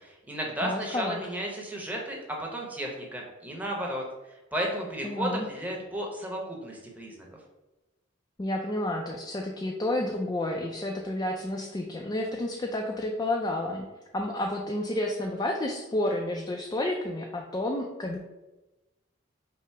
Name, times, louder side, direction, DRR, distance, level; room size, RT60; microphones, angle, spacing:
voice 1, 0.0-4.0 4.5-7.2, right 1 dB, 10° right, -1 dB, 0.8 m, -33 dB
voice 2, 0.6-1.2 5.0-5.5 8.4-13.9 14.1-18.2, left 1 dB, 20° left, 1 dB, 0.3 m, -30 dB
5.6 x 2.0 x 4.5 m, 1.1 s
head